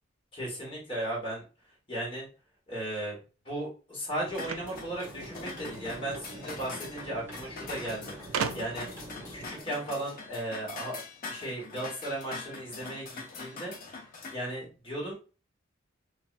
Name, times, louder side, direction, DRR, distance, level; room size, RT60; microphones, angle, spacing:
voice 1, 0.3-1.4 1.9-2.3 2.7-3.2 3.4-8.1 8.5-8.9 9.3-11.0 11.3-13.7 14.3-15.1, right 1 dB, 25° left, -4 dB, 1.4 m, -36 dB
sound 1, 4.2-9.6, right 1 dB, 10° right, 1.0 m, -45 dB
sound 2, 4.3-14.3, left 4 dB, 45° left, 0.6 m, -43 dB
sound 3, 4.4-5.8 6.9-7.0 7.3-7.4 8.3-9.0, right 6 dB, 80° right, 0.4 m, -35 dB
3.2 x 2.6 x 2.4 m, 0.34 s
head